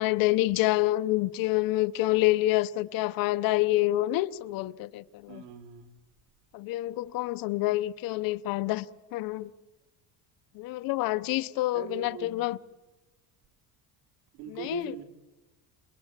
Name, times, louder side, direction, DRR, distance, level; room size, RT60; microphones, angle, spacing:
voice 1, 0.0-5.4 6.5-8.9 9.1-9.5 10.5-12.6 14.5-14.9, left 17 dB, 60° left, 0.8 m, -27 dB
voice 2, 5.3-6.0 11.7-12.4 14.3-15.0, right 10 dB, 80° right, 3.1 m, -42 dB
28.5 x 18.5 x 7.4 m
cardioid pair, 145°, 39 cm